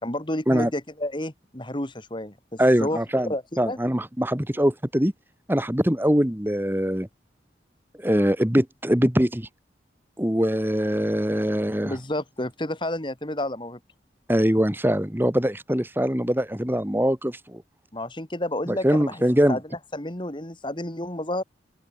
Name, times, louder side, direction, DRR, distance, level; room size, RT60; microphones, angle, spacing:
voice 1, 0.0-3.8 11.8-13.8 17.9-19.2 19.5-19.6 19.9-21.4, left 1 dB, 25° left, 2.9 m, -30 dB
voice 2, 2.6-5.1 5.5-7.1 8.0-9.5 10.2-11.9 14.3-17.6 18.7-19.6, equal, 10° right, 2.0 m, -22 dB
open air
head